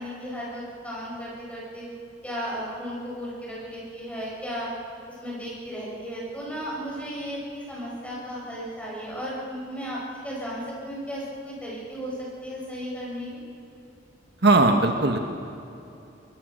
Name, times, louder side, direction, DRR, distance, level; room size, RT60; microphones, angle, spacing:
voice 1, 0.0-1.8 2.2-4.7 5.2-12.1 12.4-13.4, equal, 5° left, -5 dB, 7.5 m, -35 dB
voice 2, 14.4-15.2, right 2 dB, 60° right, 5 dB, 1.5 m, -18 dB
23.0 x 22.0 x 6.7 m, 2.7 s
head